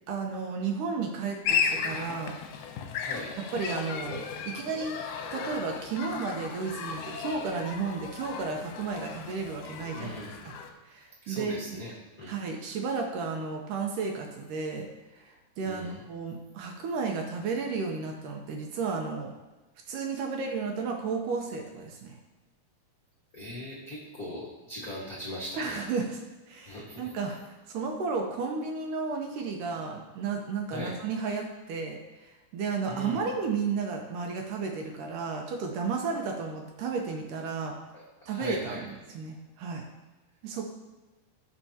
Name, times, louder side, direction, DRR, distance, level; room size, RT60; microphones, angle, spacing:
voice 1, 0.1-2.3 3.5-5.0 5.3-10.2 10.4-10.5 10.8-11.6 12.3-14.9 15.1-19.3 19.9-22.2 25.6-26.2 26.5-37.8 38.3-39.9 40.4-40.7, right 4 dB, 70° right, 2 dB, 2.2 m, -33 dB
sound 1, 1.4-10.7, left 6 dB, 75° left, 2.2 m, -35 dB
voice 2, 3.0-3.3 9.9-10.3 11.2-12.3 15.6-16.0 23.3-25.8 26.6-27.1 30.7-31.0 32.9-33.2 37.9-38.8, left 1 dB, 50° left, -6 dB, 1.1 m, -40 dB
16.5 x 5.5 x 2.8 m, 1.2 s
omnidirectional pair, 4.2 m